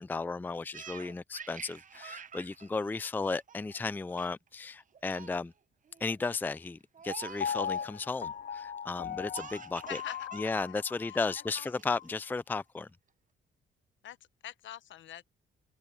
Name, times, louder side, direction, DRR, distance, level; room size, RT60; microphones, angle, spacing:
voice 1, 0.0-5.5 6.0-10.0 10.3-12.9, left 4 dB, 10° left, 0.4 m, -35 dB
Laughter, 0.7-3.8 4.2-4.5 4.8-5.4 5.9-6.2 6.9-7.9 9.3-10.7 11.0-11.1 11.7-12.2, right 7 dB, 40° right, 1.0 m, -47 dB
Piano, 7.4-11.5 12.0-12.1, left 8 dB, 45° left, 0.7 m, -38 dB
voice 2, 9.9-10.8 11.1-11.2 11.5-11.7 14.0-14.2 14.4-15.3, left 11 dB, 70° left, 1.2 m, -44 dB
cardioid pair, 90°, 20 cm